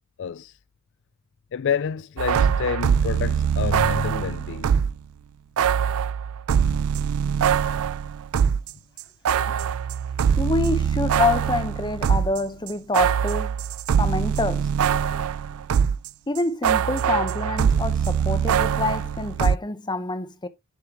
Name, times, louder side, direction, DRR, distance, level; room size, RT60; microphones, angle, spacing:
voice 1, 0.2-0.6 1.5-4.7 9.5-9.6 15.1-15.2, left 7 dB, 55° left, 0.4 m, -28 dB
sound 1, 2.2-5.0 5.6-8.7 9.0-16.1 16.4-19.6, right 7 dB, 65° right, 0.4 m, -23 dB
voice 2, 10.4-13.5 14.0-14.7 16.3-20.5, left 3 dB, 20° left, 0.8 m, -26 dB
10.0 x 5.5 x 3.0 m
head